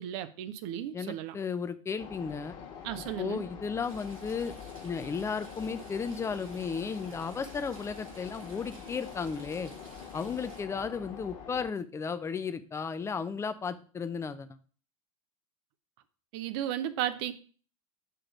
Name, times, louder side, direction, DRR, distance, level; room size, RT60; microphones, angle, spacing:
voice 1, 0.0-1.3 2.8-3.4 16.3-17.3, right 11 dB, 50° right, 12 dB, 0.7 m, -34 dB
voice 2, 0.9-2.6 3.2-4.5 4.8-9.7 10.1-14.5, left 5 dB, 15° left, 12 dB, 0.5 m, -34 dB
sound 1, 2.0-11.7, left 7 dB, 40° left, 1.6 m, -45 dB
Stream / Trickle dribble, 3.8-10.6, right 2 dB, 75° right, 2.5 m, -54 dB
6.8 x 3.8 x 5.9 m, 0.40 s
figure-of-eight pair, 85°, 18 cm